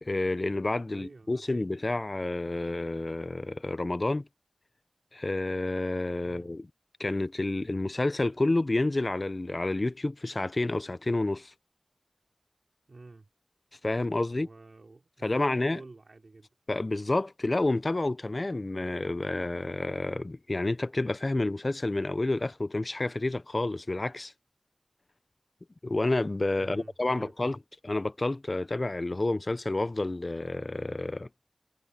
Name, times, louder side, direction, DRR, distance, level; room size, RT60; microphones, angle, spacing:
voice 1, 0.0-4.3 5.1-6.7 7.0-11.5 13.8-14.5 15.2-15.8 16.7-24.3 25.8-27.6 27.8-31.3, left 2 dB, 50° left, 0.6 m, -29 dB
voice 2, 0.9-1.7 6.2-6.5 12.9-13.3 14.3-16.5 26.6-27.6, right 3 dB, 75° right, 3.4 m, -50 dB
wide cardioid pair, 55°, 0 cm